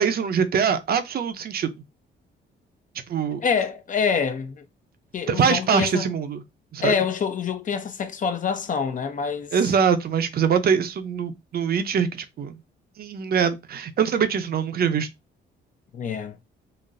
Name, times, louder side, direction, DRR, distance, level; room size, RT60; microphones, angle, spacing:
voice 1, 0.0-1.7 3.1-3.4 5.3-6.4 6.7-6.9 9.5-12.5 13.0-15.1, right 7 dB, 50° right, 0.6 m, -23 dB
voice 2, 3.4-4.6 5.1-6.1 6.8-9.5 15.9-16.4, left 6 dB, 40° left, 0.6 m, -26 dB
3.9 x 2.0 x 2.5 m
cardioid pair, 90°, 20 cm